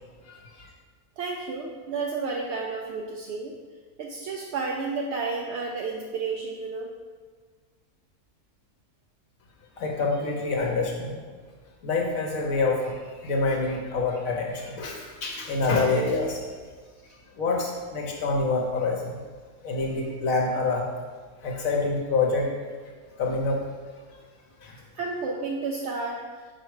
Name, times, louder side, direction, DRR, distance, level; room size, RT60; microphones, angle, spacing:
voice 1, 0.3-0.7 9.8-11.1 11.8-16.5 17.4-19.2 19.6-20.9 21.4-22.5 23.2-23.6 24.6-24.8, left 3 dB, 70° left, 0 dB, 1.1 m, -26 dB
voice 2, 1.2-3.6 4.0-6.9 24.9-26.2, right 4 dB, 65° right, 0 dB, 0.7 m, -31 dB
4.8 x 4.5 x 4.7 m, 1.5 s
omnidirectional pair, 1.6 m